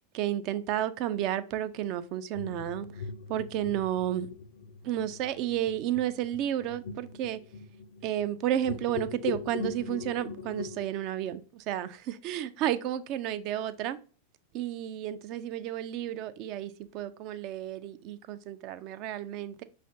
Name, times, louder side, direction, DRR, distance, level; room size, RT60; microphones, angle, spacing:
voice 1, 0.1-2.9 3.3-4.3 4.8-7.4 8.0-14.0 14.5-19.6, right 11 dB, 40° right, 0.3 m, -32 dB
sound 1, 2.3-10.9, left 6 dB, 55° left, 0.4 m, -41 dB
5.5 x 3.2 x 2.6 m
figure-of-eight pair, 90°, 0 cm